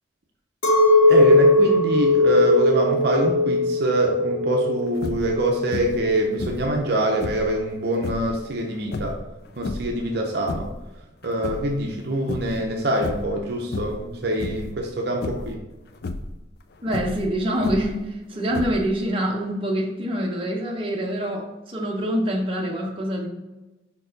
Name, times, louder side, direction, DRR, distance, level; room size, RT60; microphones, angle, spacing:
Chink clink, 0.6-6.1, left 2 dB, 80° left, 1.1 m, -18 dB
voice 1, 1.1-9.2 9.6-10.7 11.2-15.6, right 1 dB, 55° right, 1 dB, 0.6 m, -24 dB
sound 1, 4.9-5.4 5.7-6.1 6.4-7.5 8.0-8.3 8.9-10.0 10.3-10.9 11.2-12.0 12.3-12.7 13.0-13.4 13.7-14.1 14.4-14.8 15.2-15.6 15.9-16.3 16.9-18.0 18.5-19.0, left 2 dB, 55° left, 0.4 m, -32 dB
voice 2, 16.8-23.3, equal, 25° right, -1 dB, 0.9 m, -25 dB
5.4 x 4.5 x 3.9 m, 1.1 s
head